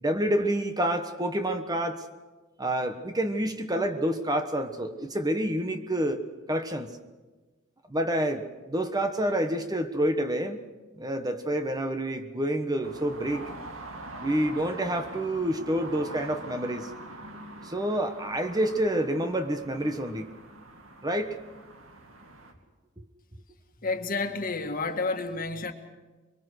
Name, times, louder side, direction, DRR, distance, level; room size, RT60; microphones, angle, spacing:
voice 1, 0.0-2.0 2.6-6.2 6.5-6.9 7.9-10.6 11.0-13.5 14.2-16.9 17.6-20.3 21.0-21.4 23.0-23.1, right 1 dB, 20° right, 7 dB, 1.3 m, -28 dB
sound 1, 12.8-22.5, right 2 dB, 80° right, 2.6 m, -44 dB
voice 2, 23.8-25.7, left 3 dB, 45° left, 6 dB, 1.8 m, -30 dB
23.5 x 23.0 x 6.4 m, 1.3 s
head